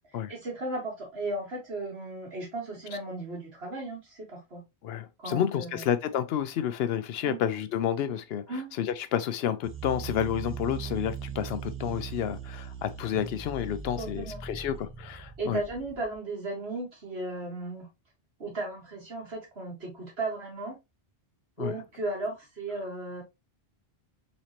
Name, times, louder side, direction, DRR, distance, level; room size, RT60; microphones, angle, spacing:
voice 1, 0.3-4.6 5.2-5.9 7.2-7.4 8.5-8.7 14.0-14.4 15.4-17.9 18.4-20.8 21.6-23.2, right 2 dB, 80° right, 2.1 m, -35 dB
voice 2, 4.8-8.4 8.8-8.9 9.1-15.6 21.6-21.7, left 9 dB, 75° left, 0.8 m, -30 dB
sound 1, 9.6-16.2, right 6 dB, 15° right, 0.6 m, -40 dB
4.1 x 3.1 x 2.8 m
omnidirectional pair, 1.1 m